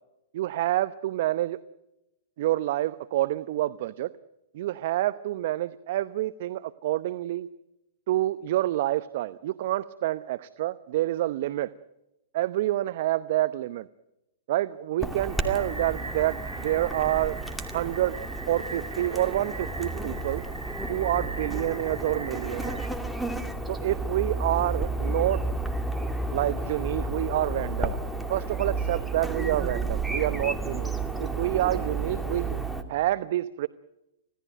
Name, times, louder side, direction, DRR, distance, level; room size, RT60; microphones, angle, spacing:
voice 1, 0.3-1.6 2.4-4.1 4.5-7.5 8.1-11.7 12.3-13.9 14.5-17.4 17.7-18.2 18.4-20.4 20.9-22.9 23.7-25.4 26.0-28.0 28.3-30.9 31.2-32.6 32.9-33.7, right 14 dB, 55° right, 15 dB, 0.8 m, -28 dB
Chirp tweet / Buzz, 15.0-32.8, right 2 dB, ahead, 2.4 m, -32 dB
sound 1, 15.3-22.9, right 2 dB, 90° right, 4.7 m, -41 dB
26.5 x 17.5 x 9.2 m, 0.93 s
hypercardioid pair, 115°, 0 cm